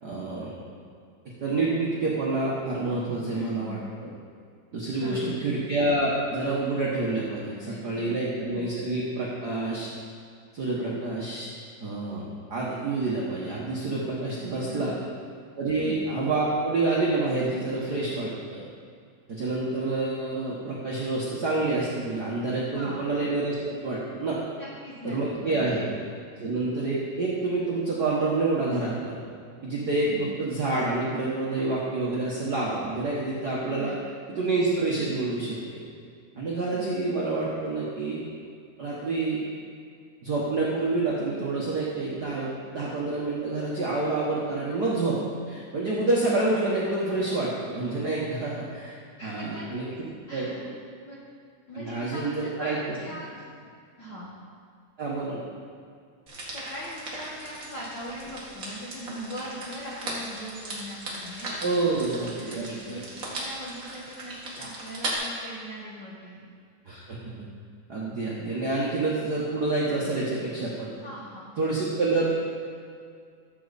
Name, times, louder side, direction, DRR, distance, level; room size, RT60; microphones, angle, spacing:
voice 1, 0.0-0.6 1.4-3.8 4.7-9.9 10.5-11.5 11.8-14.9 15.6-18.6 19.3-24.4 25.0-26.0 26.4-29.2 29.6-33.9 34.4-35.8 36.4-38.2 38.8-39.4 40.2-45.2 45.5-48.9 49.2-50.5 51.7-52.8 55.0-55.4 61.6-63.0 66.9-67.5 67.9-70.9 71.6-72.3, right 2 dB, 60° right, -6 dB, 1.0 m, -28 dB
voice 2, 3.3-3.9 5.0-5.4 7.5-8.2 8.4-8.7 14.4-15.0 15.7-16.0 22.7-23.0 24.5-25.9 30.0-30.3 33.7-34.0 36.7-36.9 49.2-50.0 50.3-50.7 51.0-51.2 51.7-53.4 54.0-54.4 56.5-61.7 62.4-66.4 71.0-71.5, equal, 55° left, -6 dB, 1.3 m, -40 dB
sound 1, 56.3-65.1, right 2 dB, 35° right, 1.6 m, -38 dB
13.0 x 7.3 x 4.1 m, 2.2 s
omnidirectional pair, 3.6 m